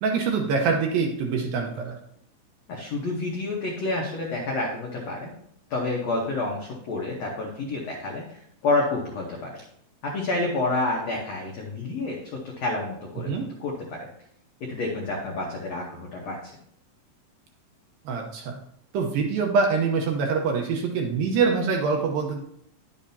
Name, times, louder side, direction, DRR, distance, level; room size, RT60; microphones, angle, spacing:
voice 1, 0.0-2.0 13.3-13.5 18.1-18.6 18.9-22.4, right 5 dB, 75° right, 2 dB, 2.3 m, -24 dB
voice 2, 2.7-5.3 5.7-9.5 10.0-13.3 13.6-14.1 14.6-16.5, left 2 dB, 90° left, -2 dB, 1.4 m, -29 dB
10.5 x 7.5 x 2.8 m, 0.71 s
omnidirectional pair, 4.8 m